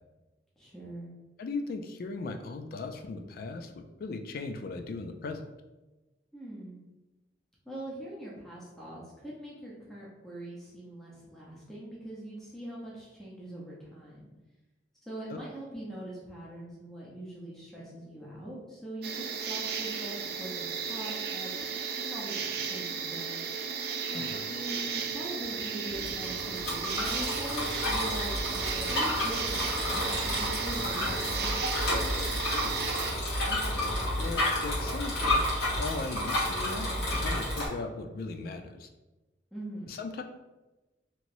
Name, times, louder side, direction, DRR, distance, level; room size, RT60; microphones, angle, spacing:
voice 1, 0.6-1.1 6.3-6.8 7.7-14.3 15.0-21.5 22.0-23.4 24.1-31.6 39.5-39.9, right 1 dB, ahead, -7 dB, 0.6 m, -42 dB
voice 2, 1.4-5.4 15.3-15.4 24.1-24.4 32.5-32.8 33.5-35.4 35.8-36.9 37.1-38.9 39.9-40.2, left 3 dB, 55° left, 6 dB, 0.3 m, -38 dB
sound 1, 19.0-33.1, right 6 dB, 60° right, 0.4 m, -34 dB
Bicycle, 25.9-37.7, left 1 dB, 75° left, 1.3 m, -31 dB
3.0 x 2.9 x 2.6 m, 1.1 s
head